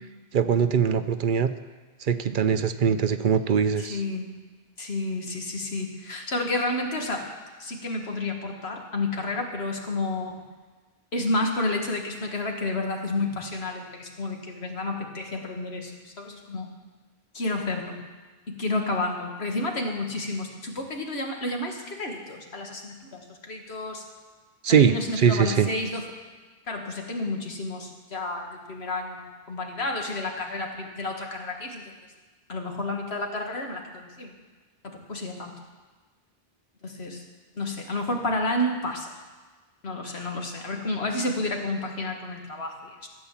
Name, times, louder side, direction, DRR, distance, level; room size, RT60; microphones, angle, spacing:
voice 1, 0.3-1.5 2.0-4.0 24.6-25.7, right 7 dB, 60° right, 11 dB, 0.7 m, -22 dB
voice 2, 3.8-4.4 4.8-7.3 7.6-10.3 11.1-16.7 17.3-18.0 18.5-24.0 24.7-26.0 26.7-31.9 32.5-34.3 34.8-35.6 36.8-37.2 37.6-39.1 39.8-43.1, left 2 dB, 85° left, 2 dB, 1.9 m, -30 dB
14.0 x 8.5 x 7.3 m, 1.3 s
omnidirectional pair, 1.0 m